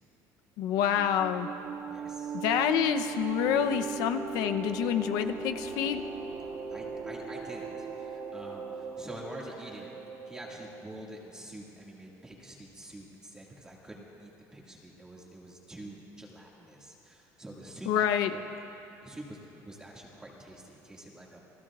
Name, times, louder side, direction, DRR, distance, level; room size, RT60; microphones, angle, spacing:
voice 1, 0.6-1.5 2.3-6.0 17.9-18.3, left 9 dB, 75° left, 8 dB, 0.7 m, -27 dB
sound 1, 0.7-11.0, right 5 dB, 60° right, 1.7 m, -39 dB
voice 2, 1.9-2.3 6.7-9.9 10.3-18.5 19.0-19.4 19.7-21.4, right 1 dB, 10° right, -3 dB, 2.0 m, -46 dB
29.0 x 18.5 x 2.4 m, 2.9 s
cardioid pair, 170°, 7 cm